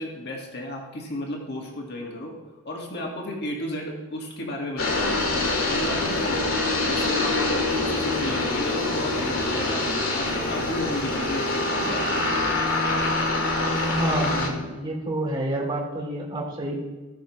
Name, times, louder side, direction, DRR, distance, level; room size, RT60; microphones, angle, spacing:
voice 1, 0.0-2.3 2.6-5.2 5.7-9.8 10.1-12.1, left 1 dB, 50° left, -1 dB, 1.8 m, -33 dB
sound 1, 4.8-14.5, left 2 dB, 70° left, 2.2 m, -25 dB
voice 2, 13.9-16.8, right 1 dB, 20° right, -3 dB, 2.8 m, -29 dB
17.0 x 6.3 x 3.1 m, 1.2 s
head